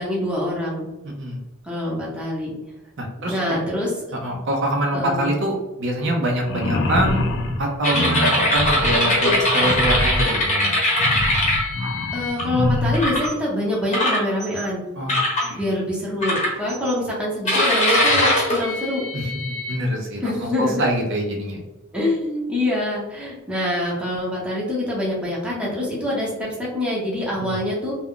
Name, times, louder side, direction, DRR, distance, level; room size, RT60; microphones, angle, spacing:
voice 1, 0.0-0.9 1.6-2.5 3.3-3.9 4.9-5.3 12.1-14.8 15.5-19.0 20.2-20.8 21.9-27.9, left 1 dB, 5° right, -6 dB, 0.8 m, -25 dB
voice 2, 1.0-1.4 3.0-3.6 4.2-7.2 7.6-10.8 15.0-15.7 19.1-21.6 27.3-27.5, right 1 dB, 60° right, 0 dB, 0.6 m, -25 dB
sound 1, 6.4-13.2, left 1 dB, 55° left, 0.4 m, -25 dB
sound 2, 7.8-12.4 12.9-13.3 13.9-14.6 15.1-15.5 16.2-16.9 17.5-19.8, left 1 dB, 35° left, 0.8 m, -21 dB
2.4 x 2.1 x 3.6 m, 1.0 s
head